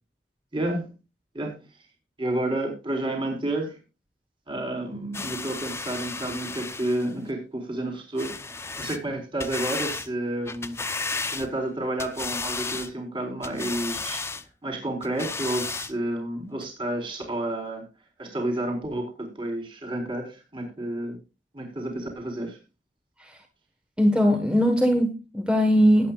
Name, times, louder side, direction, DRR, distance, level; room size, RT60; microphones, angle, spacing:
voice 1, 0.5-0.9 1.3-1.6 2.2-3.8 4.5-8.3 8.8-10.8 11.2-14.2 14.6-17.8 18.2-21.2 21.5-22.6, right 1 dB, 30° right, 4.2 m, -30 dB
sound 1, 5.1-7.1 8.2-9.0 9.4-10.1 10.5-11.7 12.0-12.9 13.4-14.4 15.0-15.9 16.6-16.7, left 4 dB, 15° left, 0.7 m, -33 dB
voice 2, 24.0-26.1, equal, 5° right, 1.3 m, -20 dB
21.0 x 8.7 x 2.4 m
head